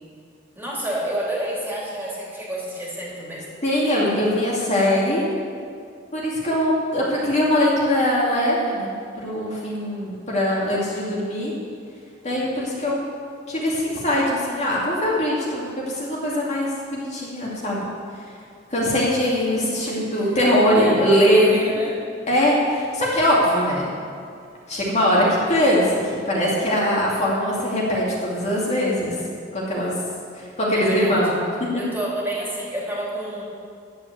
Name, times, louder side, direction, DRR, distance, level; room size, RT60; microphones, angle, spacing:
voice 1, 0.5-3.5 19.8-20.0 20.7-21.1 21.5-22.0 30.7-31.3 31.7-33.4, right 1 dB, 10° right, -5 dB, 3.0 m, -29 dB
voice 2, 3.6-5.2 6.1-11.5 12.2-13.0 13.5-17.9 18.7-21.5 22.3-23.9 24.7-29.2 29.5-29.9 30.3-31.4, equal, 35° left, -5 dB, 2.5 m, -21 dB
10.5 x 8.1 x 7.9 m, 2.3 s
head